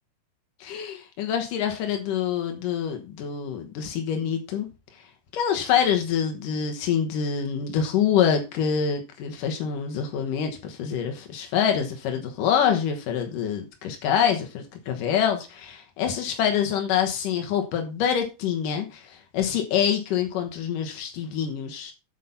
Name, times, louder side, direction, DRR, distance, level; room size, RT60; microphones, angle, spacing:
voice 1, 0.6-4.7 4.9-5.0 5.3-21.9, left 8 dB, 80° left, 1.9 m, -26 dB
8.3 x 8.2 x 5.7 m
omnidirectional pair, 5.8 m